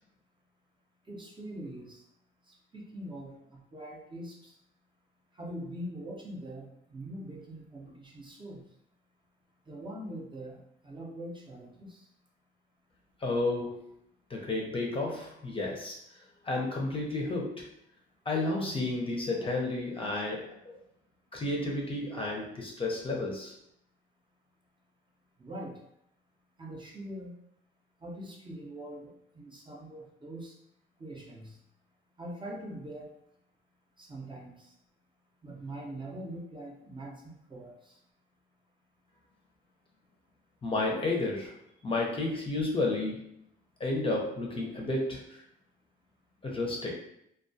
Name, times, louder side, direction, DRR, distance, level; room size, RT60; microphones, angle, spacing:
voice 1, 1.1-2.0 2.5-4.5 5.4-8.6 9.7-12.0 25.4-25.8 26.6-27.3 28.0-29.1 29.3-30.5 31.0-31.6 32.2-33.1 34.0-34.7 35.4-37.8, right 1 dB, 25° right, -2 dB, 0.6 m, -43 dB
voice 2, 13.2-13.9 14.3-16.0 16.4-17.7 18.3-20.8 21.3-23.5 40.6-41.6 41.8-43.2 43.8-45.4 46.4-47.0, left 2 dB, 25° left, -1 dB, 0.6 m, -31 dB
2.2 x 2.2 x 2.6 m, 0.75 s
cardioid pair, 90°, 20 cm